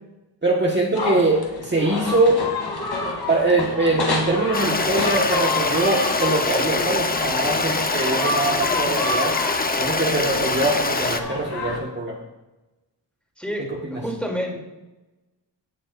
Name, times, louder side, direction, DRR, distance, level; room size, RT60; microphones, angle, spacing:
voice 1, 0.4-2.4 3.3-9.4 9.7-12.2 13.8-14.0, right 2 dB, 25° right, -2 dB, 1.5 m, -22 dB
sound 1, 0.9-11.8, left 3 dB, 65° left, 2.7 m, -29 dB
Stream, 4.5-11.2, left 3 dB, 20° left, 0.8 m, -24 dB
voice 2, 13.4-13.7 14.0-14.6, equal, 5° left, -1 dB, 3.0 m, -28 dB
17.0 x 8.3 x 2.6 m, 1.0 s
wide cardioid pair, 95°, 43 cm